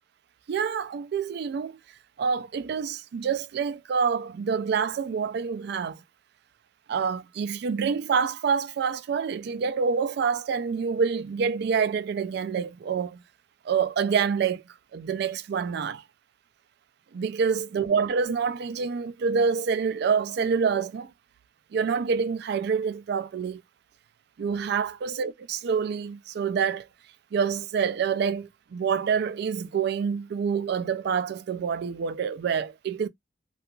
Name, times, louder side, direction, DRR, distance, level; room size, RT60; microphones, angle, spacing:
voice 1, 0.5-1.8 2.2-6.0 6.9-13.2 13.6-14.6 14.9-16.0 17.1-21.1 21.7-23.6 24.4-26.9 27.3-33.1, right 6 dB, 60° right, 0.3 m, -27 dB
2.8 x 2.3 x 2.3 m
head